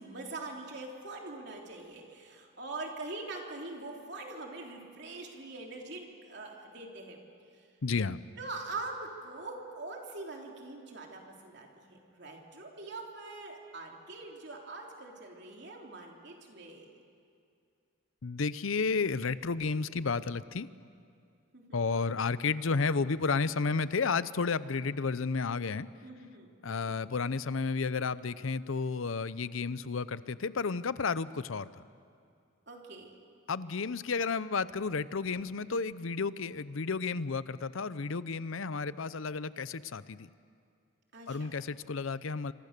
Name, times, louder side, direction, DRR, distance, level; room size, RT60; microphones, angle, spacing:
voice 1, 0.0-7.2 8.4-16.9 21.5-21.9 26.0-26.9 32.7-33.2 41.1-41.5, right 3 dB, 55° right, 0 dB, 3.4 m, -43 dB
voice 2, 7.8-8.2 18.2-20.7 21.7-25.9 26.6-31.8 33.5-40.3 41.3-42.5, left 4 dB, 75° left, 16 dB, 0.7 m, -32 dB
27.5 x 25.5 x 6.7 m, 2.4 s
head